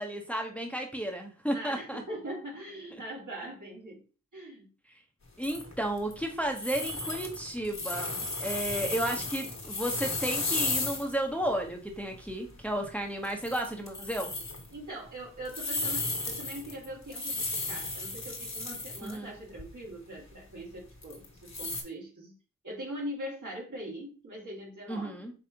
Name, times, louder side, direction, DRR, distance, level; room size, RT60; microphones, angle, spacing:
voice 1, 0.0-2.0 5.4-14.3 19.0-19.3 24.9-25.3, right 1 dB, 5° left, 2 dB, 0.9 m, -33 dB
voice 2, 1.5-4.0 4.3-4.7 14.7-22.4 22.6-25.3, right 1 dB, 65° right, -3 dB, 2.2 m, -42 dB
sound 1, 5.4-6.2 6.6-11.1 11.4-11.5 12.1-12.3 12.6-12.9 13.2-14.7 15.5-19.2 19.5-19.6 21.0-21.8, left 3 dB, 55° left, 1.5 m, -34 dB
5.2 x 3.3 x 2.8 m, 0.35 s
cardioid pair, 45°, 32 cm